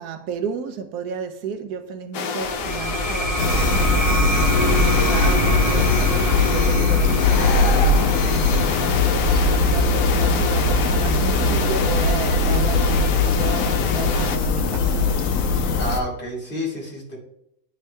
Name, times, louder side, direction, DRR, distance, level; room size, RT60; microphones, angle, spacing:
voice 1, 0.0-4.5 4.8-8.6 9.1-15.2, right 7 dB, 75° right, 1.1 m, -33 dB
sound 1, 2.1-14.4, left 5 dB, 85° left, 1.3 m, -29 dB
sound 2, 2.4-13.6, equal, 25° right, 1.2 m, -26 dB
sound 3, 3.4-16.0, left 3 dB, 60° left, 1.0 m, -20 dB
voice 2, 8.6-9.0 15.8-17.2, left 1 dB, 35° left, 2.0 m, -30 dB
10.0 x 3.6 x 3.2 m
omnidirectional pair, 1.7 m